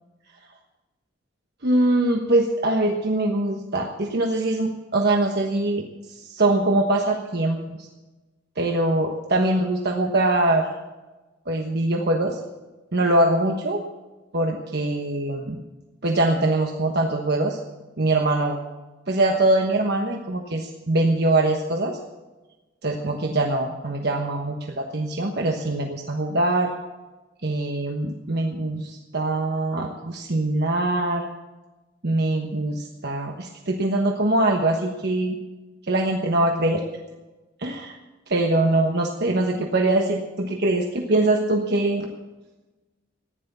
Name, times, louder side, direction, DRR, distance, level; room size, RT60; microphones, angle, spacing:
voice 1, 1.6-5.8 6.1-7.9 8.6-10.7 11.5-12.4 12.9-13.8 14.3-15.6 16.0-17.6 18.0-18.6 19.1-22.0 22.8-26.7 27.4-31.2 32.0-35.4 35.9-36.8 37.6-38.0 38.3-42.1, right 2 dB, 55° right, 2 dB, 1.2 m, -23 dB
15.0 x 10.5 x 6.8 m, 1.2 s
head